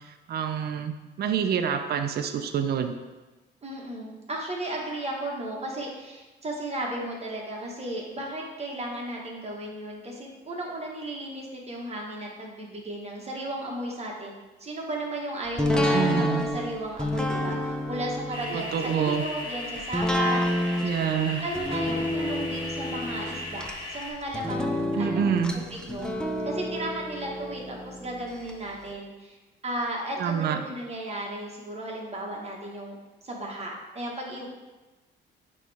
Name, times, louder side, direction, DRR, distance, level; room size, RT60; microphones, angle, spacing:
voice 1, 0.3-3.0 15.7-16.4 18.5-19.2 20.8-21.5 25.0-25.6 30.2-30.6, right 7 dB, 55° right, 7 dB, 0.5 m, -27 dB
voice 2, 3.6-20.8 21.4-26.1 26.4-29.4 29.6-32.9 33.2-34.5, right 1 dB, 30° right, -2 dB, 1.5 m, -35 dB
sound 1, 15.6-28.5 28.9-29.0, left 1 dB, 5° left, 0.6 m, -30 dB
sound 2, 18.3-24.1, left 1 dB, 25° left, 1.9 m, -37 dB
8.6 x 3.2 x 3.5 m, 1.2 s
cardioid pair, 90°, 20 cm